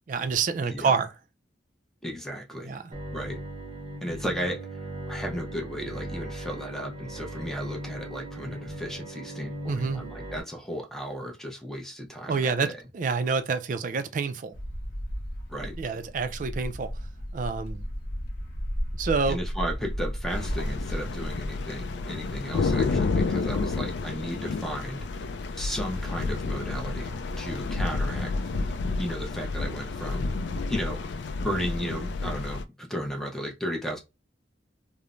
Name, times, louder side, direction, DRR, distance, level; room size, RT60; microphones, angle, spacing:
voice 1, 0.1-1.1 2.6-2.8 9.6-10.0 12.3-14.5 15.8-16.9 17.3-17.8 19.0-19.4 22.9-23.1, right 5 dB, 45° right, 0.3 m, -27 dB
voice 2, 0.6-1.0 2.0-2.8 3.1-3.4 4.0-12.8 15.5-15.8 19.3-25.0 25.5-28.3 28.6-30.4 30.7-34.0, equal, ahead, 0.5 m, -35 dB
Bowed string instrument, 2.9-10.4, right 1 dB, 25° right, 0.8 m, -38 dB
sound 1, 14.5-21.5, equal, 50° left, 0.7 m, -34 dB
sound 2, 20.3-32.6, left 3 dB, 65° left, 0.3 m, -30 dB
3.1 x 2.0 x 2.4 m
head